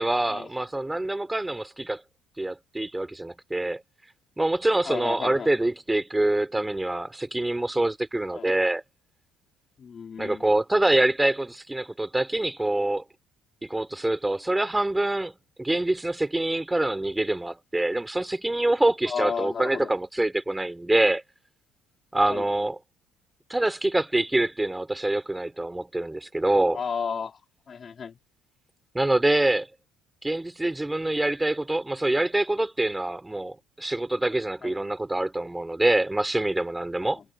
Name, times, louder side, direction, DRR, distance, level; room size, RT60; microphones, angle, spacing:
voice 1, 0.0-2.0 2.4-3.8 4.4-8.8 10.2-13.0 13.6-15.3 15.6-21.2 22.1-22.8 23.5-26.8 28.9-29.7 30.2-37.2, right 2 dB, 10° right, 3.0 m, -25 dB
voice 2, 4.8-5.5 8.3-8.5 9.8-10.4 19.0-19.9 22.3-22.4 26.7-27.4 27.7-28.2 34.6-34.8 37.1-37.2, left 6 dB, 40° left, 3.1 m, -33 dB
cardioid pair, 100°, 0 cm